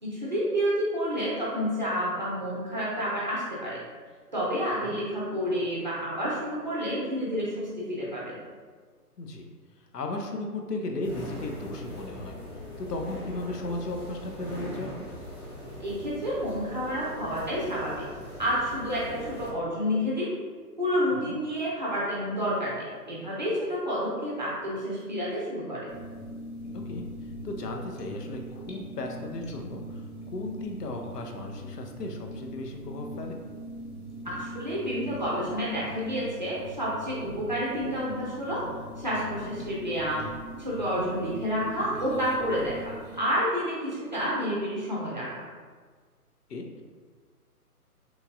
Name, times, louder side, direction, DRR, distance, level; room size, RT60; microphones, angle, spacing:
voice 1, 0.0-3.8 4.3-8.4 15.8-18.1 18.4-20.3 20.8-25.9 34.2-38.6 39.0-40.3 40.6-45.4, equal, 30° right, -7 dB, 0.5 m, -29 dB
voice 2, 9.8-12.3 12.8-14.9 21.1-21.4 26.7-27.1 27.4-33.4 40.8-41.1 46.5-46.8, left 2 dB, 85° left, 3 dB, 0.6 m, -36 dB
sound 1, 11.0-19.5, left 1 dB, 15° left, 0.9 m, -41 dB
sound 2, 25.9-43.2, right 1 dB, 45° left, 0.6 m, -41 dB
3.0 x 2.6 x 2.3 m, 1.5 s
figure-of-eight pair, 150°, 47 cm